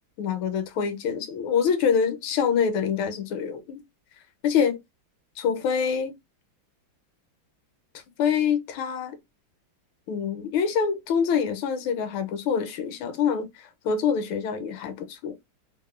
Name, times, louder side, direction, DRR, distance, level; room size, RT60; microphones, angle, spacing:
voice 1, 0.2-3.8 4.4-4.8 5.4-6.1 8.2-9.2 10.1-15.3, left 7 dB, 85° left, 1.4 m, -25 dB
3.4 x 2.0 x 2.2 m
omnidirectional pair, 2.2 m